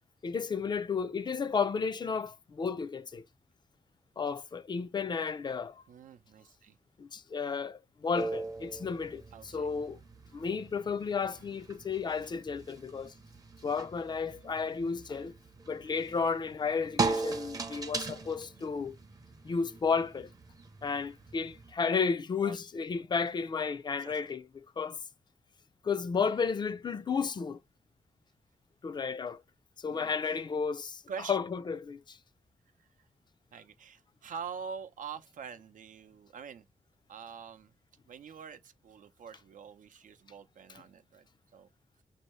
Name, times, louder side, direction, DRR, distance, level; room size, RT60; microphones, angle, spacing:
voice 1, 0.2-3.2 4.2-5.8 7.0-10.0 10.3-13.1 13.6-15.3 15.7-19.0 19.4-20.3 20.8-25.0 25.8-27.6 28.8-29.4 29.8-31.0 31.3-32.2, left 5 dB, 35° left, 0.4 m, -33 dB
voice 2, 5.9-6.8 9.3-9.7 22.4-22.6 24.0-24.3 29.9-30.3 31.1-31.4 32.8-32.9 33.5-36.7 37.1-37.7 38.1-41.7, right 6 dB, 85° right, 0.6 m, -45 dB
sound 1, 8.1-21.7, right 3 dB, 25° right, 0.6 m, -40 dB
5.3 x 2.7 x 3.0 m
wide cardioid pair, 175°, 13 cm